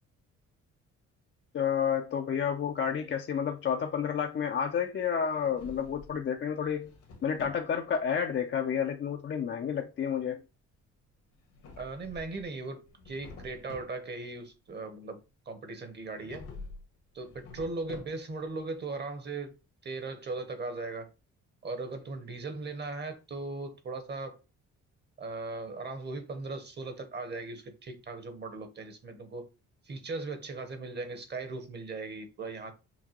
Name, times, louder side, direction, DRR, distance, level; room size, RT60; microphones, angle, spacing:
voice 1, 1.5-6.9 7.2-10.4, left 7 dB, 40° left, 0.5 m, -30 dB
Drawer open or close, 5.2-6.2 6.6-7.7 11.3-12.5 12.8-14.0 16.1-16.8 17.2-18.4, left 3 dB, 75° left, 1.4 m, -48 dB
voice 2, 11.8-15.2 15.5-16.5 17.1-19.5 19.8-21.1 21.6-24.4 25.2-29.5 29.8-32.7, right 3 dB, 35° right, 1.0 m, -38 dB
5.8 x 2.2 x 3.0 m
cardioid pair, 90°, 30 cm